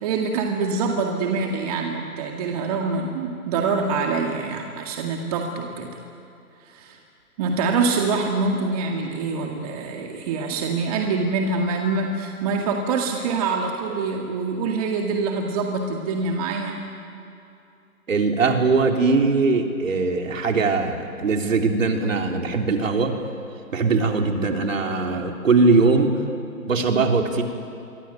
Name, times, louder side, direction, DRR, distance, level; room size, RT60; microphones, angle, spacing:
voice 1, 0.0-6.0 6.7-7.0 7.4-16.9, right 4 dB, 25° right, 2 dB, 2.0 m, -25 dB
voice 2, 18.1-23.1 23.7-26.1 26.7-27.4, right 4 dB, 55° right, 3 dB, 3.7 m, -20 dB
27.0 x 24.0 x 9.3 m, 2.6 s
figure-of-eight pair, 145°, 45 cm